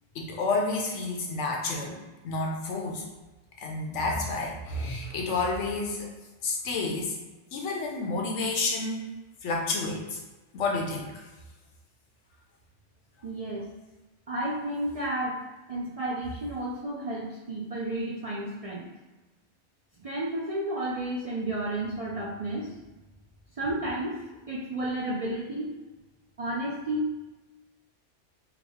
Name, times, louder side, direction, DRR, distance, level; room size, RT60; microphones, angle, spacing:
voice 1, 0.1-2.0 2.2-3.0 3.6-6.1 6.4-7.2 7.5-9.0 9.4-10.2 10.5-11.2, left 3 dB, 85° left, 0 dB, 1.0 m, -30 dB
voice 2, 13.2-13.7 14.3-15.4 15.7-18.9 20.0-22.7 23.6-24.2 24.5-25.7 26.4-27.1, right 1 dB, 50° right, -5 dB, 0.4 m, -32 dB
3.6 x 2.0 x 3.4 m, 1.1 s
omnidirectional pair, 1.2 m